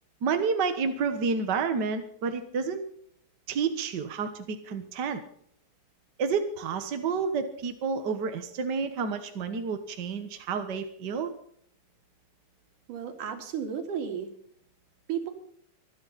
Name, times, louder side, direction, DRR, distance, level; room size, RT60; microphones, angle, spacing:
voice 1, 0.2-2.8 3.5-5.2 6.2-11.3, right 5 dB, 55° right, 8 dB, 1.2 m, -30 dB
voice 2, 12.9-14.3 15.1-15.3, right 8 dB, 80° right, 6 dB, 3.7 m, -33 dB
24.5 x 9.7 x 4.1 m, 0.64 s
omnidirectional pair, 3.6 m